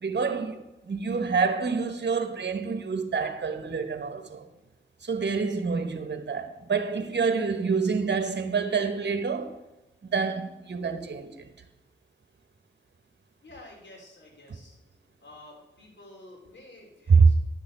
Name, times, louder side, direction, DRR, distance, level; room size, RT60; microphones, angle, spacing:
voice 1, 0.0-4.5 5.0-9.6 10.0-11.5 17.1-17.3, right 5 dB, 60° right, 1.2 m, -26 dB
voice 2, 13.4-14.8 15.2-17.3, left 1 dB, 65° left, 3.6 m, -50 dB
11.0 x 6.9 x 5.4 m
cardioid pair, 55°, 20 cm